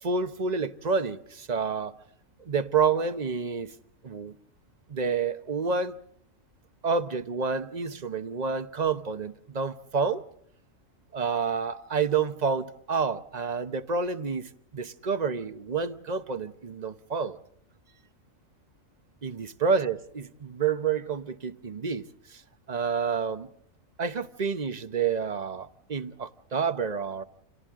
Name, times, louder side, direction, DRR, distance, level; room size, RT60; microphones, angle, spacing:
voice 1, 0.0-1.9 2.4-3.7 4.0-4.3 4.9-6.0 6.8-10.2 11.1-17.4 19.2-22.4 22.7-23.5 24.0-27.2, right 5 dB, 35° right, 1.0 m, -29 dB
30.0 x 27.5 x 3.7 m
omnidirectional pair, 1.4 m